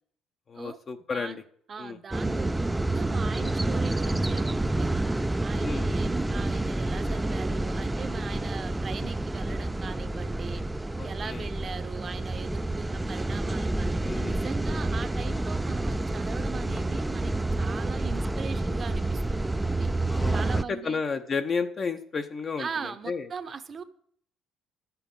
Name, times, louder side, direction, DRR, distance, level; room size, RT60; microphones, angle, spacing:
voice 1, 0.5-1.4 1.8-2.0 5.6-5.9 11.0-11.5 14.1-14.4 20.1-23.3, left 5 dB, 35° left, 6 dB, 0.6 m, -32 dB
voice 2, 1.7-2.7 2.9-4.9 5.4-10.6 11.0-19.9 20.3-21.0 22.6-23.8, right 6 dB, 35° right, 11 dB, 0.8 m, -40 dB
sound 1, 2.1-20.6, right 2 dB, 10° right, 0.4 m, -28 dB
10.0 x 6.9 x 5.3 m, 0.63 s
cardioid pair, 115°, 0 cm